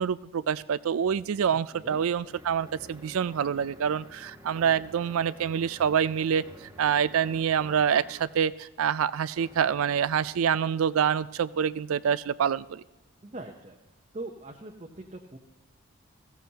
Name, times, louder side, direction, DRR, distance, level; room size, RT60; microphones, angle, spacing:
voice 1, 0.0-12.8, right 8 dB, 85° right, 18 dB, 0.4 m, -26 dB
sound 1, 1.2-8.4 9.3-10.5, equal, 15° right, 1.4 m, -51 dB
voice 2, 1.5-2.0 13.2-13.8 14.1-15.4, right 2 dB, 30° right, 1 dB, 0.7 m, -42 dB
15.5 x 15.0 x 2.9 m, 1.1 s
head